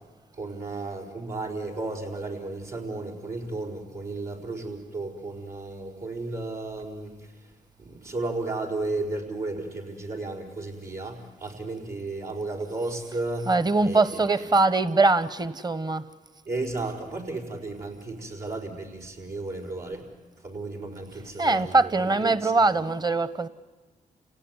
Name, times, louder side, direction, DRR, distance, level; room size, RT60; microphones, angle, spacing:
voice 1, 0.4-7.3 7.8-13.5 13.8-14.0 14.3-14.4 16.5-20.1 20.4-22.5, right 2 dB, 85° right, 4.9 m, -34 dB
voice 2, 13.5-16.0 21.4-23.5, right 3 dB, 30° right, 1.0 m, -22 dB
30.0 x 17.5 x 9.7 m
supercardioid pair, 50°, 15 cm